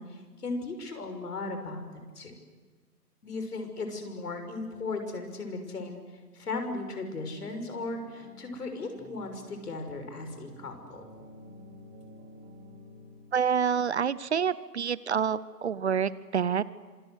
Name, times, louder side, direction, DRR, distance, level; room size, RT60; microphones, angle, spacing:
voice 1, 0.0-1.8 2.1-2.3 3.2-11.0, left 3 dB, 65° left, 6 dB, 6.3 m, -37 dB
sound 1, 7.8-13.6, equal, 25° right, 6.3 m, -51 dB
voice 2, 13.3-16.6, right 7 dB, 45° right, 18 dB, 0.8 m, -27 dB
26.5 x 25.0 x 8.2 m, 1.4 s
figure-of-eight pair, 145°, 49 cm